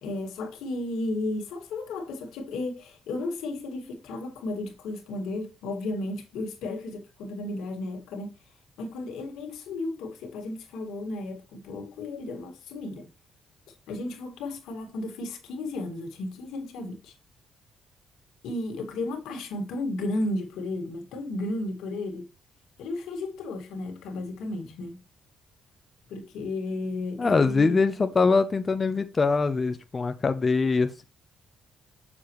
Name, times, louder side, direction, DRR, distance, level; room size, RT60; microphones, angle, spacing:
voice 1, 0.0-8.3 8.8-13.1 13.7-17.1 18.4-22.3 22.8-25.0 26.1-28.1, left 2 dB, 90° left, 2.0 m, -34 dB
voice 2, 27.2-31.0, left 4 dB, 30° left, 0.6 m, -23 dB
6.9 x 6.9 x 3.1 m
cardioid pair, 90°, 0 cm